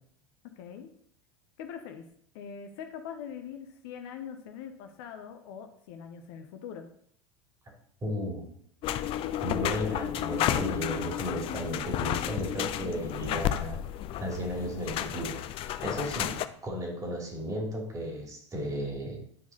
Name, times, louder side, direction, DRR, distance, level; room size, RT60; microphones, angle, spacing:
voice 1, 0.4-0.9 1.6-2.1 2.3-6.9, left 7 dB, 50° left, 7 dB, 0.9 m, -42 dB
voice 2, 8.0-8.5 9.4-13.8 14.2-19.2, equal, 20° right, 0 dB, 2.7 m, -34 dB
sound 1, 8.8-16.5, left 11 dB, 35° left, 0.5 m, -32 dB
10.0 x 4.7 x 4.1 m, 0.65 s
figure-of-eight pair, 80°, 16 cm